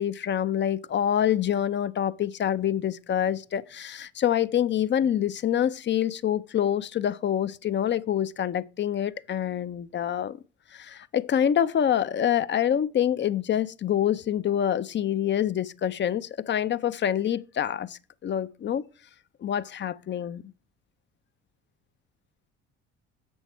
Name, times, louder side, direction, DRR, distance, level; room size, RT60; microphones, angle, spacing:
voice 1, 0.0-10.4 10.7-18.8 19.4-20.4, left 10 dB, 35° left, 0.5 m, -26 dB
7.1 x 6.3 x 4.5 m
hypercardioid pair, 65°, 32 cm